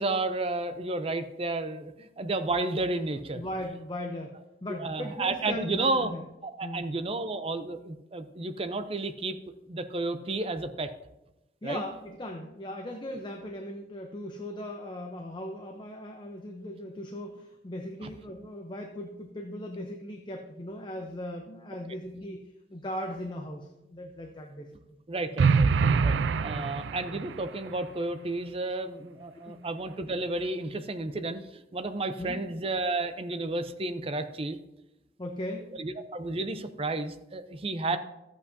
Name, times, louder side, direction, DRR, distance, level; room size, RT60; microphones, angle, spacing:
voice 1, 0.0-3.4 4.7-6.1 6.4-9.4 9.7-10.9 11.6-11.8 18.0-18.1 25.1-25.7 26.0-34.6 35.7-38.0, right 2 dB, 30° right, 9 dB, 0.6 m, -32 dB
voice 2, 3.3-6.2 6.6-6.8 11.6-22.4 22.7-24.7 25.3-25.4 26.5-26.7 29.4-29.7 32.2-32.4 35.2-35.7 37.9-38.0, left 1 dB, 25° left, 2 dB, 0.7 m, -38 dB
sound 1, 25.4-27.4, right 5 dB, 85° right, 0.4 m, -24 dB
13.5 x 8.2 x 2.7 m, 0.96 s
head